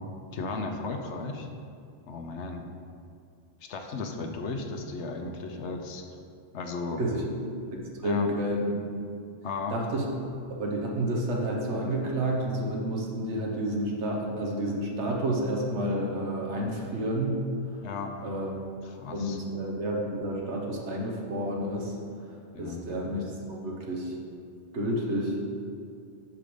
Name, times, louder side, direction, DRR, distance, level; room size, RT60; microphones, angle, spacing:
voice 1, 0.3-1.5 2.1-2.6 3.6-6.0 6.5-7.0 8.0-8.3 9.4-9.7 17.8-18.1 18.8-19.4 22.5-22.8, left 4 dB, 80° left, 4 dB, 1.0 m, -35 dB
voice 2, 8.0-8.7 9.7-10.1 10.6-17.4 18.2-18.5 19.1-22.0 22.5-24.1 24.7-25.4, right 1 dB, 80° right, -1 dB, 1.4 m, -30 dB
6.2 x 5.7 x 5.1 m, 2.4 s
omnidirectional pair, 1.1 m